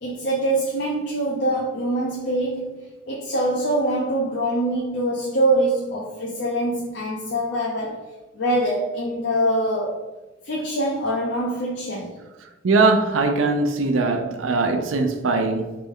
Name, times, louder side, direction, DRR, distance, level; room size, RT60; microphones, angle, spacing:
voice 1, 0.0-10.1 10.4-12.2, right 1 dB, 60° left, 0.6 m, -24 dB
voice 2, 12.6-15.8, right 3 dB, 90° right, 0.5 m, -21 dB
4.0 x 3.3 x 3.6 m
head